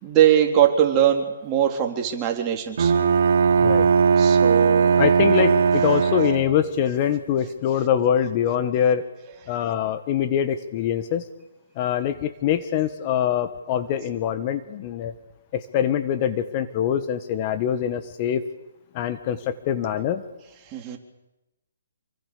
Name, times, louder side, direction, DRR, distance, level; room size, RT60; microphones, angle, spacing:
voice 1, 0.0-2.9 4.2-5.0 20.7-21.0, right 10 dB, 20° right, 2 dB, 3.7 m, -21 dB
Bowed string instrument, 2.8-6.7, right 6 dB, 55° right, 3.2 m, -18 dB
voice 2, 5.0-9.1 9.5-11.2 11.8-15.1 15.5-18.4 18.9-20.2, left 9 dB, 30° left, 10 dB, 1.5 m, -24 dB
28.0 x 24.0 x 6.9 m, 0.94 s
hypercardioid pair, 155°, 0 cm